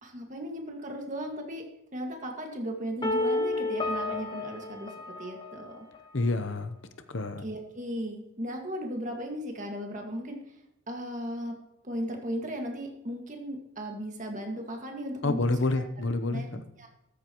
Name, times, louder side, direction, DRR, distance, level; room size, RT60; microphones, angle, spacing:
voice 1, 0.0-1.7 1.9-4.9 5.2-5.8 7.4-10.4 10.9-11.6 11.8-15.8 16.3-16.5 16.8-16.9, equal, 35° right, 1 dB, 1.9 m, -36 dB
sound 1, 3.0-6.0, left 2 dB, 20° left, 0.9 m, -31 dB
voice 2, 6.1-6.7 7.1-7.4 15.2-16.6, left 2 dB, 60° left, 10 dB, 0.8 m, -28 dB
14.0 x 13.5 x 3.0 m, 0.83 s
head